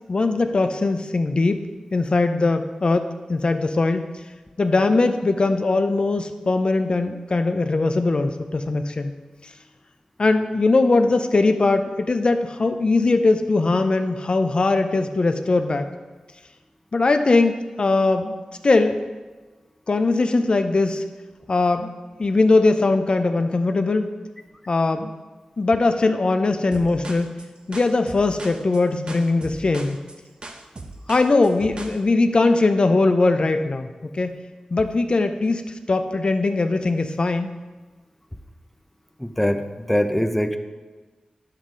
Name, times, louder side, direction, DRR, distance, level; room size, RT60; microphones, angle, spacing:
voice 1, 0.1-4.1 4.6-9.1 10.2-15.9 16.9-18.3 18.6-19.0 19.9-21.0 21.5-21.9 22.2-24.1 24.7-25.1 25.6-27.3 27.7-30.0 31.1-34.4 34.7-35.6 35.9-37.5, left 3 dB, 45° left, 7 dB, 0.5 m, -20 dB
sound 1, 26.7-32.0, right 2 dB, 45° right, 0.8 m, -39 dB
voice 2, 39.2-40.6, equal, 5° left, 7 dB, 0.6 m, -22 dB
9.8 x 7.4 x 3.8 m, 1.3 s
wide cardioid pair, 65°, 2 cm